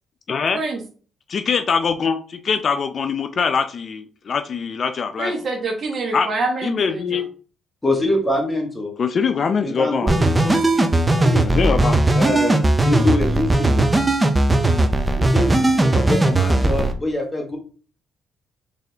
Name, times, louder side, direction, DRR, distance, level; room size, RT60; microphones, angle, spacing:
voice 1, 0.3-0.6 1.3-5.3 6.1-6.3 6.6-7.2 9.0-10.3 11.4-12.0, left 5 dB, 50° left, 8 dB, 0.4 m, -22 dB
voice 2, 5.2-7.2 10.7-11.2, right 3 dB, 50° right, 4 dB, 0.9 m, -27 dB
voice 3, 7.8-8.9 9.6-10.6 11.1-11.4 12.1-12.6 12.8-13.8 15.2-15.6 15.8-17.6, left 1 dB, 15° left, 1 dB, 1.2 m, -24 dB
sound 1, 10.1-16.9, right 2 dB, 15° right, 0.5 m, -18 dB
4.0 x 3.3 x 2.7 m, 0.40 s
cardioid pair, 90°, 0 cm